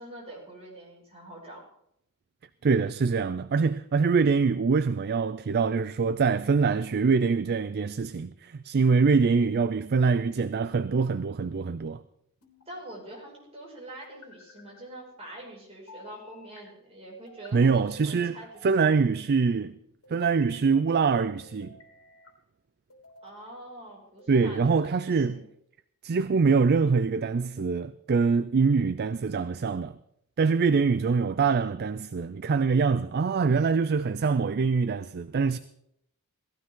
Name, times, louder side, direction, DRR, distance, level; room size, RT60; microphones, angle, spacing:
voice 1, 0.0-1.7 8.7-8.9 12.7-18.9 23.2-25.4, right 1 dB, 30° right, 6.0 m, -45 dB
voice 2, 2.6-12.0 17.5-18.4 18.6-19.8 20.1-21.8 24.3-25.4 26.0-30.0 30.4-35.6, right 5 dB, 45° right, 0.4 m, -24 dB
sound 1, 12.4-13.2 14.0-14.8 15.9-16.6 17.3-17.9 18.5-19.4 20.0-20.7 21.4-22.3 22.9-23.5 24.2-25.0, left 3 dB, 75° left, 3.4 m, -54 dB
18.0 x 15.0 x 3.8 m
head